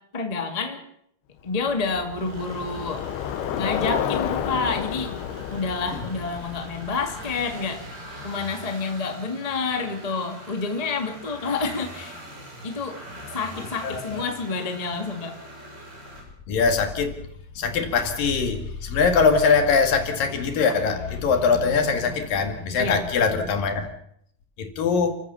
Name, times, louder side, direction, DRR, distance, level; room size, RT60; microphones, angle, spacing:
voice 1, 0.1-0.8 1.4-3.0 3.6-5.1 5.5-7.8 8.2-12.2 12.6-13.0 13.3-15.3 22.8-23.0, left 4 dB, 15° left, 4 dB, 1.4 m, -28 dB
Bicycle, 1.6-8.1, left 10 dB, 90° left, 3.1 m, -31 dB
sound 1, 2.1-16.2, right 1 dB, 80° right, 9.2 m, -43 dB
voice 2, 13.8-14.2 16.5-17.2 17.6-23.9 24.6-25.1, left 5 dB, 65° left, 6 dB, 3.7 m, -22 dB
30.0 x 15.0 x 7.0 m, 0.73 s
omnidirectional pair, 4.5 m